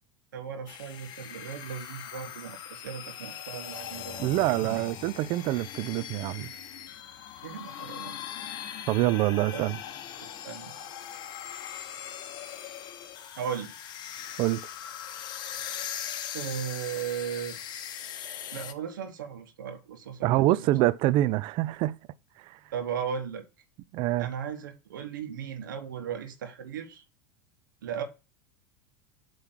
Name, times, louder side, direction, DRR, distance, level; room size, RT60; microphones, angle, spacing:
voice 1, 0.3-4.8 7.4-8.3 9.5-9.7 10.2-10.7 12.4-12.5 13.4-13.7 16.3-17.6 18.5-20.7 22.7-23.4 24.2-27.0 27.8-28.0, right 8 dB, 75° right, 1.4 m, -37 dB
sound 1, 0.7-18.7, left 10 dB, 45° left, 1.0 m, -40 dB
voice 2, 4.2-6.5 8.9-9.8 14.4-14.6 20.2-22.0 22.4-22.6 23.9-24.3, right 16 dB, 50° right, 0.5 m, -26 dB
8.1 x 3.2 x 6.0 m
hypercardioid pair, 85°, 11 cm